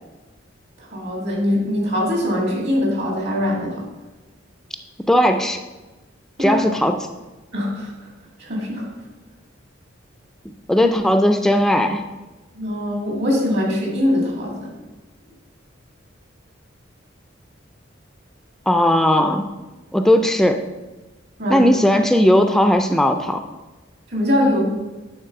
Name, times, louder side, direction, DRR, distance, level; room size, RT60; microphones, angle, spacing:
voice 1, 0.8-3.8 6.4-6.6 7.5-8.1 8.4-8.9 10.7-10.9 12.6-14.7 21.4-21.7 24.1-24.6, left 1 dB, 60° right, -2 dB, 2.4 m, -22 dB
voice 2, 5.1-5.6 6.4-7.0 10.7-12.0 18.7-19.5 19.9-20.6 21.5-23.4, left 1 dB, ahead, 6 dB, 0.3 m, -17 dB
9.2 x 4.0 x 5.9 m, 1.2 s
head